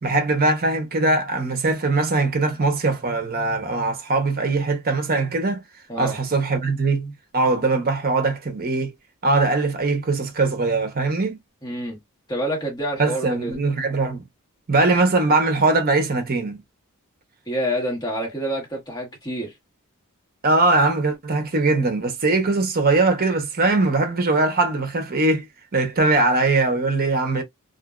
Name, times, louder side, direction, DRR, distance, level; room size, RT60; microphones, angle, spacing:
voice 1, 0.0-5.6 6.0-8.9 9.2-11.3 13.0-14.2 14.7-16.6 20.4-25.5 25.7-27.4, right 3 dB, 45° right, 0.7 m, -21 dB
voice 2, 11.6-12.0 12.3-13.6 17.5-19.5, equal, 20° left, 1.1 m, -27 dB
2.6 x 2.2 x 2.2 m
head